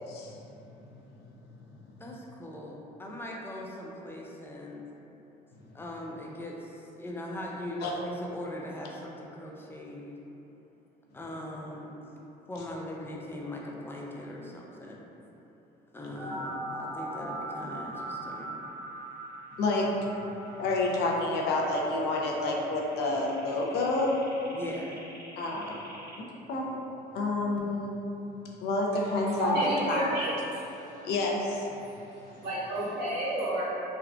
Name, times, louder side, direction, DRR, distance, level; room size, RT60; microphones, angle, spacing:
voice 1, 0.1-0.7 1.2-1.3 1.8-1.9 5.6-5.7 7.8-8.0 19.6-24.2 25.4-25.9 26.2-26.8 27.1-27.9 28.6-30.2 31.0-31.7, left 2 dB, 75° left, -2 dB, 0.5 m, -29 dB
voice 2, 2.0-4.9 5.7-10.2 11.1-12.0 12.5-15.1 15.9-18.6 24.5-25.0, left 1 dB, 15° left, -2 dB, 0.3 m, -40 dB
sound 1, 16.2-26.2, right 1 dB, 20° right, 1.0 m, -41 dB
voice 3, 29.2-31.1 31.8-32.0 32.4-33.6, right 1 dB, 75° right, -10 dB, 1.3 m, -31 dB
3.6 x 2.3 x 2.2 m, 3.0 s
cardioid pair, 110°, 17 cm